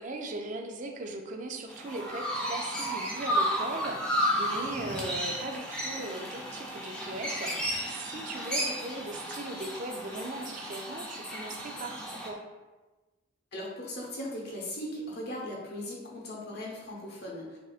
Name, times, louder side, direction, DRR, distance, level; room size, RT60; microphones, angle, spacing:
voice 1, 0.0-12.4, right 2 dB, 40° right, 4 dB, 0.4 m, -39 dB
Chirp tweet, 1.7-12.3, equal, 5° left, 0.7 m, -33 dB
voice 2, 13.5-17.6, left 1 dB, 55° left, -3 dB, 1.0 m, -38 dB
6.0 x 2.7 x 2.4 m, 1.2 s
head